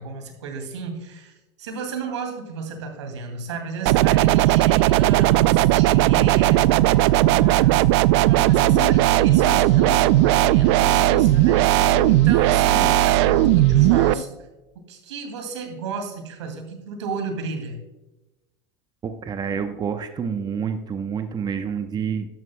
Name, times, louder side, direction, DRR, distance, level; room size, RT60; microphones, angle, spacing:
voice 1, 0.0-1.3 1.6-14.4 14.9-17.8, right 4 dB, 85° right, 5 dB, 2.4 m, -33 dB
sound 1, 3.9-14.1, right 17 dB, 70° right, 0.4 m, -17 dB
sound 2, 8.4-14.2, left 9 dB, 75° left, 0.6 m, -33 dB
voice 2, 19.0-22.3, right 7 dB, 25° right, 8 dB, 0.8 m, -28 dB
12.5 x 11.0 x 2.2 m, 1.0 s
hypercardioid pair, 95°, 15 cm